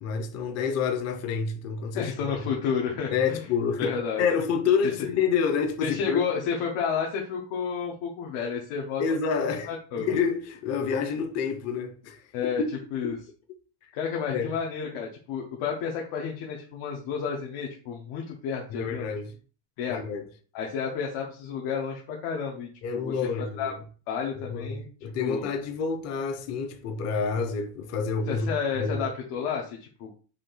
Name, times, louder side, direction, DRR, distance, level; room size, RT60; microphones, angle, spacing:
voice 1, 0.0-2.4 3.1-6.2 9.0-9.7 10.0-12.7 14.3-14.5 18.7-19.4 19.9-20.2 22.8-23.8 24.4-28.5 28.8-29.0, left 6 dB, 35° left, 0.5 m, -28 dB
voice 2, 1.9-3.4 3.8-4.3 4.8-4.9 5.8-9.0 9.7-10.1 12.3-12.6 12.9-13.2 13.9-19.1 19.8-20.0 20.5-23.7 24.1-24.9 25.2-25.5 28.3-30.1, left 6 dB, 80° left, 1.1 m, -31 dB
5.1 x 2.7 x 3.8 m
cardioid pair, 175°, 49 cm